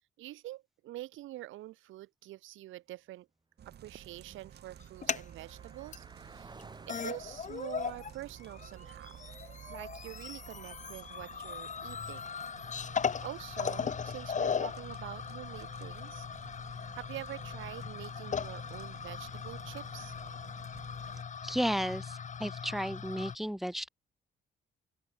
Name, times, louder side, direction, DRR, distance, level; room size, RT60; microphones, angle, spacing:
voice 1, 0.2-3.3 3.7-9.3 9.7-12.2 13.2-16.3 16.7-20.1, right 16 dB, 80° right, 0.7 m, -46 dB
Car passing by, 3.5-15.2, right 3 dB, 20° right, 2.7 m, -60 dB
sound 1, 3.6-21.2, right 9 dB, 55° right, 1.5 m, -53 dB
sound 2, 4.8-5.2 5.9-6.0 6.6-6.7 6.9-8.1 8.4-23.4, left 6 dB, 40° left, 1.2 m, -38 dB
voice 2, 21.4-23.9, equal, ahead, 1.7 m, -33 dB
open air
cardioid pair, 90°, 20 cm